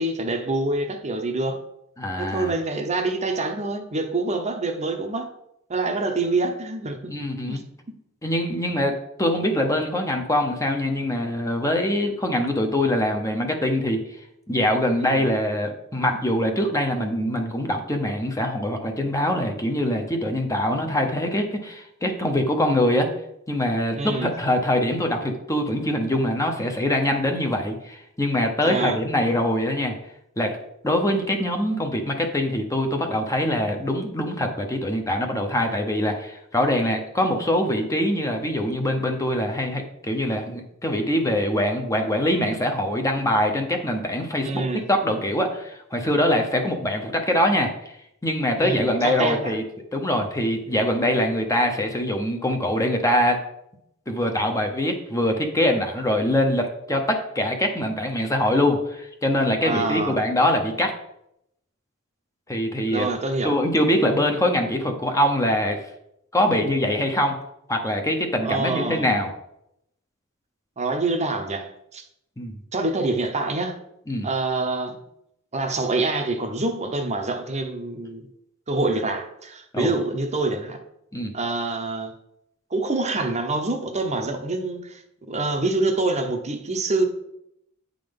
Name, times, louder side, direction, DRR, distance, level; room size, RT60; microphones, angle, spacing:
voice 1, 0.0-1.6 2.2-5.3 5.7-7.0 7.5-7.6 15.0-15.3 23.9-24.3 28.6-29.0 44.4-44.8 48.6-49.5 59.6-60.2 62.9-63.5 68.4-69.1 70.8-72.0 72.7-73.8 74.2-74.9 75.5-78.2 78.7-80.8 81.3-82.1 82.7-85.0 85.3-87.0, right 2 dB, 30° right, 5 dB, 0.8 m, -26 dB
voice 2, 2.0-2.5 7.1-7.6 8.2-14.0 14.5-23.1 23.5-30.0 30.4-30.6 30.8-47.9 48.2-49.6 49.9-53.4 54.1-60.9 62.5-63.1 63.4-65.8 66.3-67.4 67.7-69.3 72.4-72.5 74.1-74.3 79.7-79.9 81.1-81.3, left 1 dB, 15° left, 3 dB, 0.8 m, -23 dB
8.8 x 3.8 x 5.2 m, 0.79 s
head